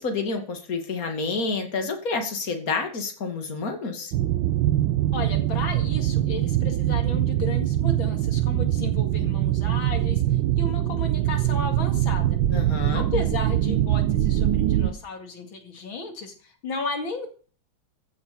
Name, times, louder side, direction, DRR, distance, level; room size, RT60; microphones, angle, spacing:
voice 1, 0.0-4.1 12.5-13.1, left 4 dB, 45° left, 5 dB, 2.7 m, -29 dB
sound 1, 4.1-14.9, right 13 dB, 75° right, 1.5 m, -23 dB
voice 2, 5.1-12.2 12.9-17.3, left 4 dB, 90° left, 5 dB, 3.0 m, -34 dB
15.0 x 7.2 x 7.0 m, 0.40 s
omnidirectional pair, 2.1 m